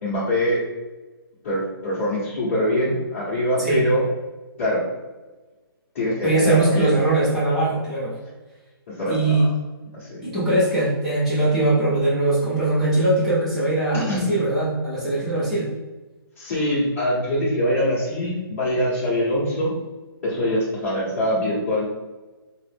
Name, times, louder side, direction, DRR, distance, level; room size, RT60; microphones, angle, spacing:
voice 1, 0.0-0.6 1.4-4.0 4.6-4.8 5.9-6.9 8.9-9.5 9.9-10.3 13.9-14.3 16.4-19.7 20.2-21.9, equal, 30° left, -10 dB, 1.5 m, -23 dB
voice 2, 6.2-8.2 9.1-9.5 10.2-15.7, right 2 dB, ahead, -11 dB, 0.4 m, -21 dB
5.3 x 2.0 x 3.6 m, 1.2 s
hypercardioid pair, 180°, 13 cm